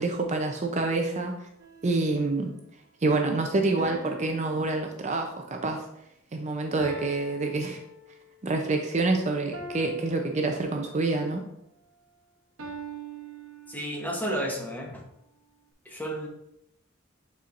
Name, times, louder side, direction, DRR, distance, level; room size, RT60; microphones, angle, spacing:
voice 1, 0.0-1.3 1.8-2.5 3.0-5.8 6.3-7.8 8.4-11.4, right 3 dB, 35° right, 3 dB, 0.6 m, -27 dB
sound 1, 1.6-2.4 3.8-5.6 6.8-8.4 9.5-11.2 12.6-14.2, right 2 dB, 75° right, 1.0 m, -44 dB
voice 2, 13.7-15.0 15.8-16.3, equal, 10° left, 0 dB, 1.0 m, -32 dB
8.8 x 4.4 x 2.5 m, 0.79 s
head